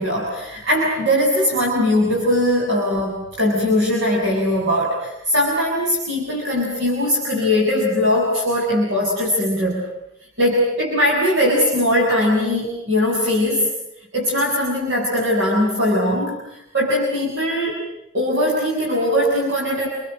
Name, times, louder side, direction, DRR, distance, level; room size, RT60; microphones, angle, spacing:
voice 1, 0.0-9.8 10.4-13.7 14.1-17.8 18.1-19.9, left 1 dB, 65° right, -2 dB, 7.2 m, -20 dB
29.5 x 24.0 x 7.8 m, 0.83 s
head